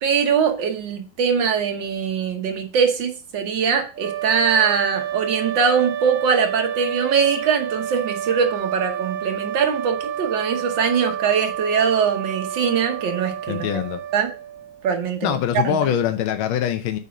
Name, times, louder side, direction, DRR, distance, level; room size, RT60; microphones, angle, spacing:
voice 1, 0.0-13.8 14.1-14.3 14.8-15.8, right 6 dB, 65° right, 1.8 m, -22 dB
sound 1, 3.9-14.9, right 9 dB, 40° right, 0.7 m, -30 dB
voice 2, 13.5-14.0 15.2-17.0, left 10 dB, 80° left, 1.5 m, -23 dB
8.2 x 4.1 x 5.2 m
omnidirectional pair, 2.2 m